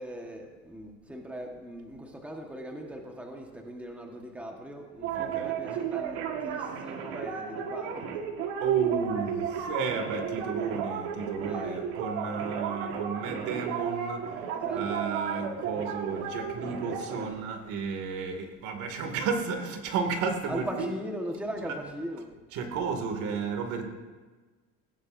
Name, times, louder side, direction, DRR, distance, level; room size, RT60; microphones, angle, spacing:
voice 1, 0.0-8.2 11.4-11.9 14.5-14.9 20.5-22.3, equal, 5° right, 1 dB, 1.4 m, -39 dB
sound 1, 5.0-17.3, right 7 dB, 90° right, 1.7 m, -34 dB
voice 2, 5.1-5.5 8.6-14.3 14.7-20.9 21.6-21.8 22.5-23.9, right 5 dB, 65° right, 4 dB, 2.4 m, -32 dB
20.0 x 16.0 x 2.7 m, 1.4 s
cardioid pair, 135°, 32 cm